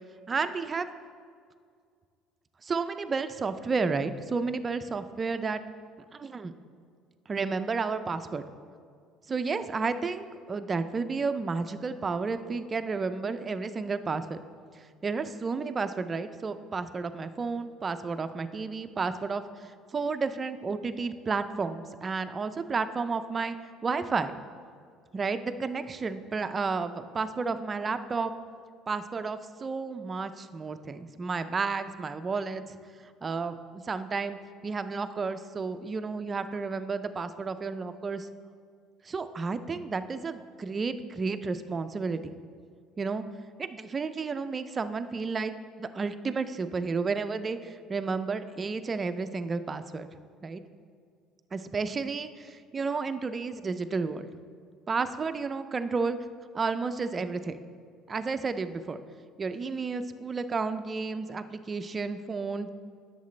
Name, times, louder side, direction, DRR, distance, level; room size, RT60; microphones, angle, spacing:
voice 1, 0.3-0.9 2.6-5.6 6.1-6.5 7.3-8.4 9.3-14.4 15.0-23.6 23.8-24.3 25.1-28.3 28.9-32.8 33.2-34.4 34.6-38.3 39.0-42.4 43.0-43.3 43.6-45.5 45.8-50.1 50.4-50.6 51.5-54.2 54.9-56.2 56.5-57.6 58.1-59.0 59.4-62.7, right 4 dB, 25° right, 10 dB, 0.4 m, -32 dB
11.0 x 6.7 x 3.2 m, 2.2 s
cardioid pair, 140°, 0 cm